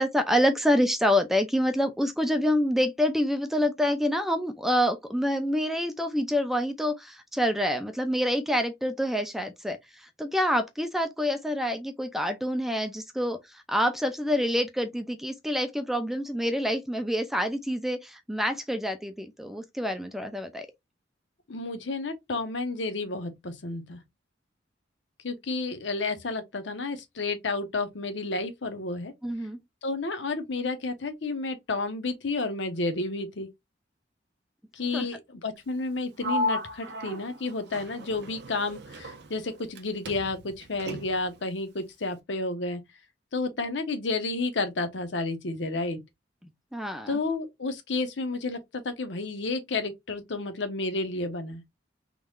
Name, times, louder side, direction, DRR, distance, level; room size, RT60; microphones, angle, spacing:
voice 1, 0.0-20.7 29.2-29.6 34.9-35.1 46.7-47.2, equal, ahead, 0.4 m, -27 dB
voice 2, 21.5-24.0 25.2-29.1 29.8-33.5 34.7-42.8 43.3-46.0 47.1-51.6, left 3 dB, 75° left, 0.9 m, -31 dB
Sliding door, 36.2-39.8 40.1-41.4, left 1 dB, 60° right, 0.7 m, -34 dB
3.7 x 3.1 x 2.3 m
head